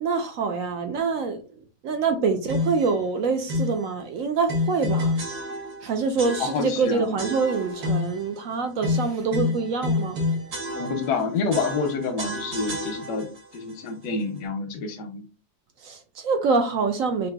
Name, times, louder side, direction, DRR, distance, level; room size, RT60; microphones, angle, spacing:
voice 1, 0.0-5.2 5.8-10.2 15.8-17.3, right 4 dB, 65° right, 0.9 m, -25 dB
sound 1, 2.5-2.9 3.5-3.8 4.5-5.9 6.2-6.8 7.2-8.2 8.8-11.2 11.5-13.4, left 2 dB, 90° right, 1.7 m, -28 dB
voice 2, 6.4-7.1 10.7-13.3 13.5-15.2, left 4 dB, 90° left, 1.4 m, -28 dB
5.6 x 2.6 x 2.3 m
omnidirectional pair, 1.7 m